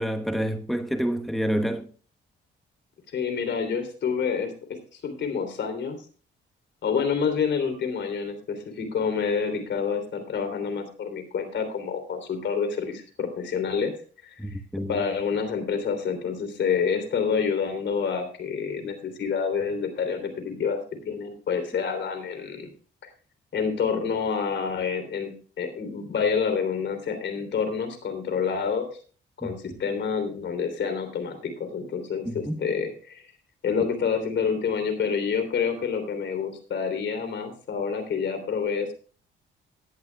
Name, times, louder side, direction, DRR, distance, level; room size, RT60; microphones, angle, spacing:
voice 1, 0.0-1.9 14.4-15.0 32.3-32.6, equal, ahead, 1.1 m, -28 dB
voice 2, 3.1-4.5 4.9-6.0 6.8-13.9 14.2-14.6 14.9-22.7 23.5-25.3 25.6-28.9 29.4-33.3 33.6-38.9, left 6 dB, 65° left, 3.3 m, -28 dB
17.5 x 11.0 x 2.3 m
cardioid pair, 90°, 20 cm